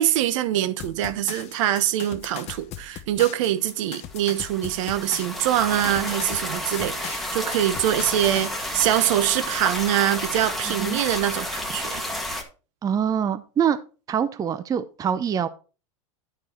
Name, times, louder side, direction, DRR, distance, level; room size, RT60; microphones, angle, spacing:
voice 1, 0.0-12.0, right 12 dB, 70° right, 1.0 m, -24 dB
sound 1, 0.8-8.5, left 10 dB, 40° left, 0.9 m, -38 dB
sound 2, 4.1-12.4, left 1 dB, ahead, 1.7 m, -31 dB
voice 2, 12.8-13.8 14.1-15.5, right 8 dB, 20° right, 0.6 m, -24 dB
11.0 x 4.7 x 4.4 m
supercardioid pair, 125°, 17 cm